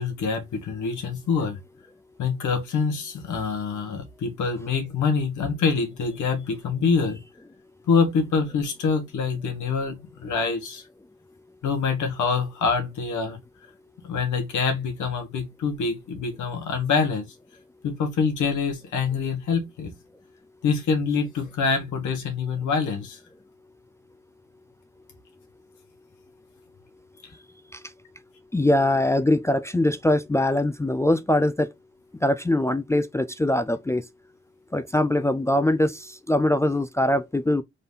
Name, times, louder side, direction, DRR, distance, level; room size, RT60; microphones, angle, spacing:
voice 1, 0.0-1.6 2.2-7.2 7.9-10.8 11.6-13.4 14.0-17.3 17.8-19.9 20.6-23.2, left 5 dB, 70° left, 1.4 m, -25 dB
voice 2, 28.5-31.7 32.2-34.1 34.7-37.6, left 1 dB, 10° left, 0.3 m, -22 dB
4.1 x 3.5 x 2.7 m
cardioid pair, 75°, 30 cm